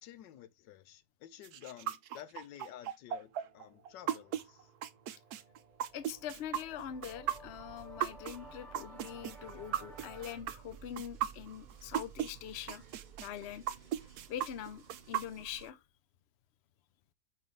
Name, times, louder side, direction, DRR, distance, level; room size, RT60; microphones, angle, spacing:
voice 1, 0.0-4.7, left 11 dB, 85° left, 1.4 m, -51 dB
sound 1, 1.4-12.3 12.7-15.7, right 10 dB, 70° right, 1.0 m, -36 dB
sound 2, 3.2-15.7, right 7 dB, 40° right, 0.6 m, -56 dB
voice 2, 5.9-12.8 13.2-13.6 14.3-15.8, left 10 dB, 55° left, 0.7 m, -43 dB
sound 3, 6.1-10.4, equal, ahead, 0.9 m, -55 dB
6.1 x 4.7 x 3.3 m
omnidirectional pair, 1.9 m